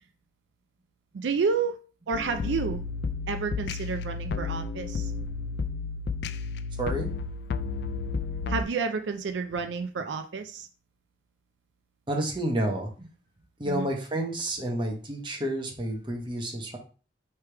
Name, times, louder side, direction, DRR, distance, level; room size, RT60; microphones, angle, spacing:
voice 1, 1.1-1.8 2.1-2.8 3.3-5.1 8.5-10.7 13.7-13.9, right 5 dB, 85° right, 8 dB, 0.4 m, -30 dB
sound 1, 2.1-8.6, left 4 dB, 65° left, 0.3 m, -32 dB
voice 2, 6.8-7.1 8.4-8.5 12.1-13.1 13.6-16.8, right 1 dB, 25° right, 1 dB, 1.0 m, -30 dB
3.4 x 3.3 x 4.5 m, 0.36 s
head